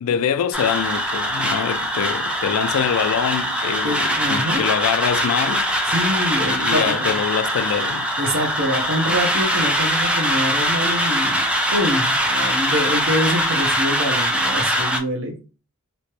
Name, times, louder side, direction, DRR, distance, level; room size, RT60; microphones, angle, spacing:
voice 1, 0.0-5.7 6.4-8.1, left 8 dB, 80° left, 0.3 m, -24 dB
sound 1, 0.5-15.0, equal, 5° right, 0.5 m, -22 dB
voice 2, 3.8-4.6 5.9-7.2 8.2-11.4 11.7-15.5, equal, 65° right, 1.0 m, -25 dB
3.1 x 2.8 x 3.0 m
head